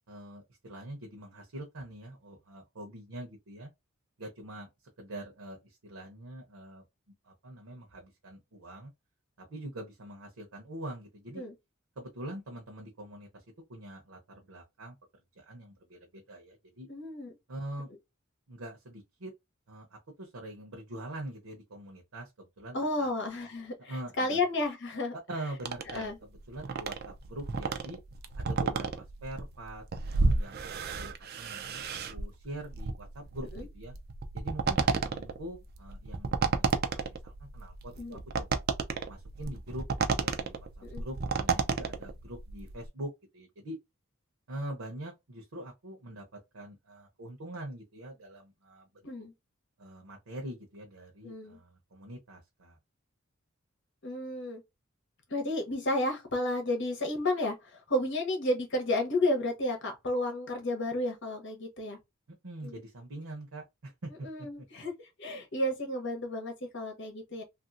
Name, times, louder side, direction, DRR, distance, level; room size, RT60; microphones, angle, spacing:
voice 1, 0.1-3.7 4.2-4.7 5.0-6.8 7.2-8.9 9.4-11.4 12.0-13.4 13.7-14.9 15.4-16.9 17.5-17.9 18.5-19.3 19.7-23.1 23.8-24.4 25.3-28.0 28.3-29.8 30.1-33.9 34.3-38.6 39.1-39.9 40.1-43.8 44.5-48.9 49.8-52.8 62.4-64.5, right 1 dB, 90° right, 0.8 m, -44 dB
voice 2, 16.9-17.3 22.7-25.1 25.9-26.2 33.5-33.7 38.0-38.2 40.8-41.0 49.0-49.3 51.2-51.6 54.0-54.6 55.3-62.0 62.6-62.8 64.2-67.4, left 1 dB, 60° left, 1.1 m, -32 dB
sound 1, 25.6-42.9, right 4 dB, 50° right, 0.5 m, -32 dB
3.0 x 2.6 x 2.5 m
head